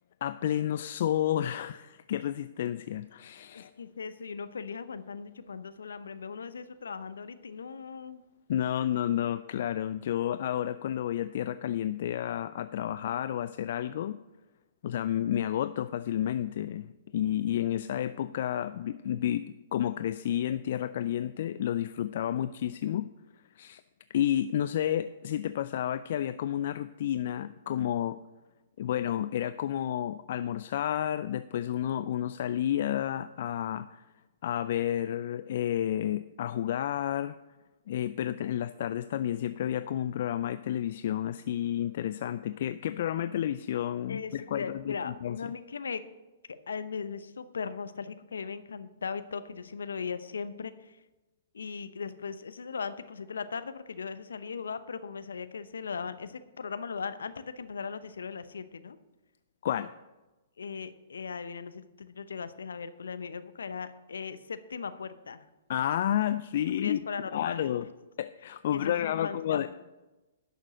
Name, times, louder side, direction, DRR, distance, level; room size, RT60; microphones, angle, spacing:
voice 1, 0.2-3.7 8.5-14.2 14.8-23.1 23.5-23.8 24.1-28.2 28.8-34.0 34.4-37.3 37.9-45.5 59.6-59.9 65.7-67.0 67.3-67.9 68.2-69.8, left 11 dB, 55° left, 13 dB, 0.3 m, -31 dB
voice 2, 3.5-8.2 44.1-46.0 46.7-51.0 51.5-59.0 60.6-65.4 66.8-67.8 68.7-69.8, left 5 dB, 75° left, 12 dB, 0.7 m, -38 dB
11.0 x 6.6 x 6.3 m, 1.1 s
figure-of-eight pair, 120°, 0 cm